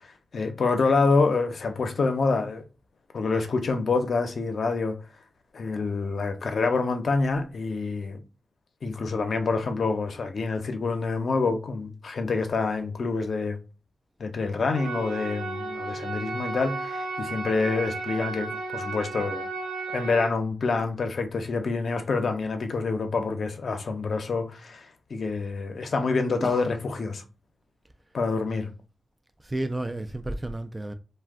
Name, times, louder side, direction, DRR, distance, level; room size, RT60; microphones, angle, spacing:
voice 1, 0.3-2.6 3.1-5.0 5.5-8.2 8.8-13.6 14.2-19.5 19.9-27.2 28.1-28.7, left 4 dB, 65° left, 0.6 m, -27 dB
sound 1, 14.7-20.3, right 3 dB, 85° right, 0.5 m, -34 dB
voice 2, 26.4-26.7 29.4-30.9, right 1 dB, 20° right, 0.3 m, -32 dB
2.5 x 2.1 x 3.5 m
cardioid pair, 75°, 0 cm